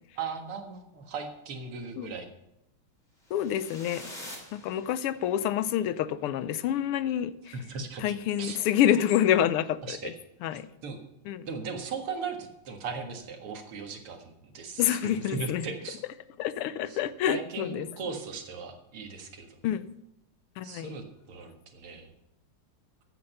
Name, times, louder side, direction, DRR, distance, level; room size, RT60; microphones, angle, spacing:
voice 1, 0.2-2.3 7.5-8.6 9.8-10.1 10.5-11.0 11.5-16.0 16.9-17.0 17.3-19.6 20.6-22.1, right 4 dB, 80° right, 4 dB, 2.6 m, -38 dB
sound 1, 3.2-5.4, left 1 dB, 20° left, 3.5 m, -46 dB
voice 2, 3.3-4.1 4.5-7.5 8.0-10.1 10.4-10.7 11.3-11.5 14.8-15.7 16.4-17.9 19.6-19.9 20.6-21.0, left 10 dB, 90° left, 14 dB, 1.6 m, -27 dB
14.0 x 8.8 x 5.6 m, 0.84 s
omnidirectional pair, 2.4 m